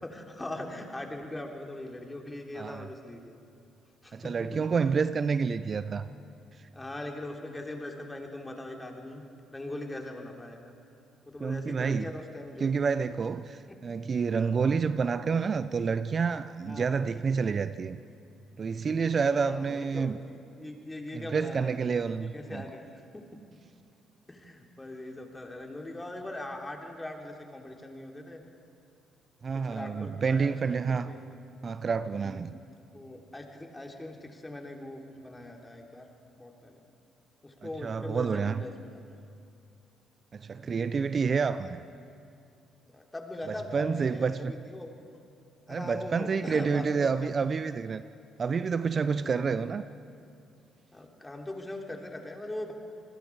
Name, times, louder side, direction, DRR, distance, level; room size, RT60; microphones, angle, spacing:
voice 1, 0.0-3.4 4.0-4.6 6.7-9.2 9.5-10.7 11.3-12.9 13.7-13.8 16.6-16.9 19.3-21.7 22.2-22.9 23.1-23.2 24.3-28.4 29.7-30.8 31.1-31.7 32.2-32.5 32.9-36.1 36.4-36.8 37.4-39.0 42.9-44.9 45.7-47.3 49.1-49.6 50.9-52.7, left 1 dB, 15° left, 2 dB, 3.4 m, -41 dB
voice 2, 2.6-2.9 4.1-6.1 11.4-12.1 12.6-18.0 18.6-20.2 21.1-22.6 29.4-31.1 31.6-32.6 37.6-38.6 40.3-41.8 43.7-44.5 45.7-48.0 48.4-49.8, right 5 dB, 45° right, 13 dB, 0.6 m, -29 dB
27.5 x 20.5 x 4.8 m, 2.5 s
supercardioid pair, 60°, 0 cm